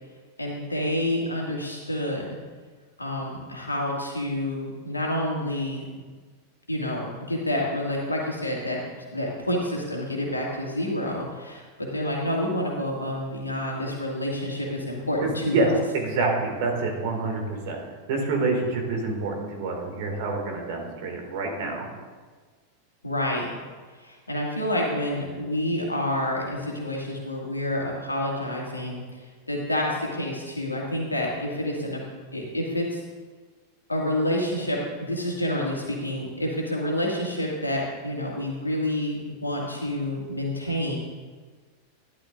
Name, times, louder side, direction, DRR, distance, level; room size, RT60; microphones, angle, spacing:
voice 1, 0.4-2.3 3.0-5.8 6.7-8.8 9.1-15.7 23.0-23.5 24.0-29.0 29.5-32.0 32.3-33.0 33.9-41.0, left 1 dB, 85° left, -2 dB, 2.1 m, -28 dB
voice 2, 15.2-15.7 15.9-17.8 18.1-21.9, right 3 dB, 50° right, 2 dB, 2.2 m, -27 dB
12.0 x 11.5 x 2.6 m, 1.4 s
figure-of-eight pair, 90°, 0 cm